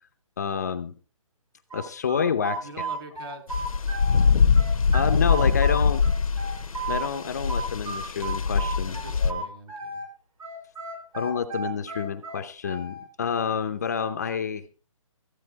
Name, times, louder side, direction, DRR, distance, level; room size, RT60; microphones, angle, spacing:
voice 1, 0.4-0.9 1.7-2.9 4.9-6.0 6.9-9.5 11.1-14.8, left 6 dB, 30° left, 8 dB, 0.7 m, -29 dB
sound 1, 1.7-4.2 4.6-7.1 7.5-10.1 10.4-13.0, right 3 dB, 90° right, 6.6 m, -34 dB
voice 2, 2.6-3.6 8.8-10.0, right 2 dB, 40° right, 5 dB, 2.6 m, -44 dB
sound 2, 3.5-9.3, left 5 dB, 90° left, 1.3 m, -23 dB
15.0 x 9.0 x 4.6 m, 0.39 s
hypercardioid pair, 175°, 18 cm